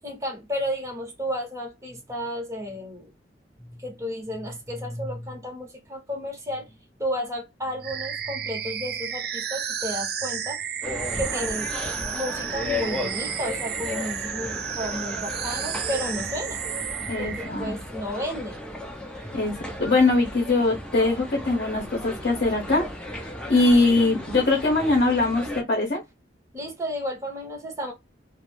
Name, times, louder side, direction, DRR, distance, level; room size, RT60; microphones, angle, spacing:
voice 1, 0.0-3.1 3.8-10.6 11.2-11.7 12.1-16.6 17.2-18.6 26.5-27.9, equal, 15° right, 0.8 m, -32 dB
sound 1, 7.8-17.5, right 8 dB, 60° right, 0.4 m, -32 dB
sound 2, 10.8-25.6, left 1 dB, 5° left, 0.5 m, -35 dB
voice 2, 17.1-17.8 19.3-19.5 19.8-22.9 23.1-23.2 23.5-26.0, left 2 dB, 55° left, 0.7 m, -22 dB
2.5 x 2.0 x 2.9 m
head